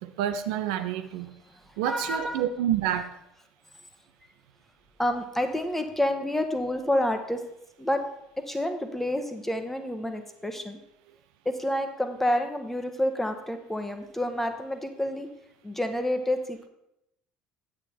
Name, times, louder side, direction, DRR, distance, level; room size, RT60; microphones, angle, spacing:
voice 1, 0.0-1.3 1.8-3.1, right 11 dB, 65° right, 9 dB, 0.5 m, -28 dB
voice 2, 1.8-2.4 5.0-7.4 7.8-8.0 8.4-10.8 11.4-15.3 15.6-16.7, left 1 dB, 5° left, 7 dB, 1.3 m, -28 dB
8.8 x 8.6 x 4.4 m, 0.82 s
figure-of-eight pair, 60°, 4 cm